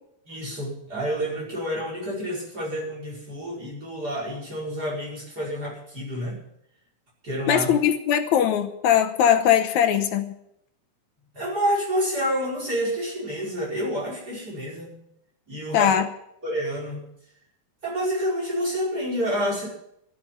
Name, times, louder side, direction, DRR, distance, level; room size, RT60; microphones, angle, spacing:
voice 1, 0.3-6.4 7.2-7.7 11.3-15.0 15.5-15.9 16.4-17.1 17.8-19.7, equal, 30° right, -4 dB, 5.6 m, -28 dB
voice 2, 7.5-10.3 15.7-16.1, left 9 dB, 80° left, 7 dB, 2.3 m, -20 dB
13.5 x 8.6 x 10.0 m, 0.76 s
omnidirectional pair, 3.4 m